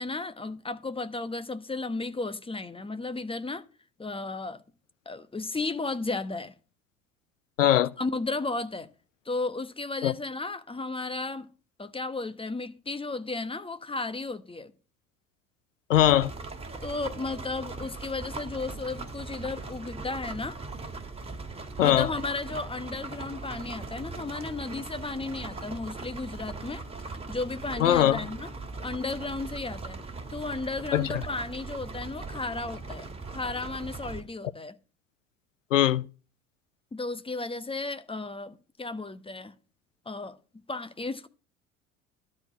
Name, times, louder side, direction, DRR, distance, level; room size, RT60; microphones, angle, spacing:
voice 1, 0.0-3.6 4.0-4.6 5.1-6.5 8.0-8.9 9.3-11.5 11.8-14.7 16.8-20.6 21.8-26.8 27.1-28.5 28.8-30.0 30.3-34.8 36.9-39.5 40.1-40.4 40.7-41.3, left 3 dB, 15° left, 1.0 m, -34 dB
voice 2, 7.6-7.9 10.0-10.1 15.9-16.3 21.8-22.1 27.8-28.2 30.9-31.2 35.7-36.0, left 12 dB, 90° left, 0.5 m, -21 dB
sound 1, 15.9-34.2, right 3 dB, 15° right, 2.4 m, -39 dB
12.5 x 4.4 x 8.2 m
hypercardioid pair, 65°, 37 cm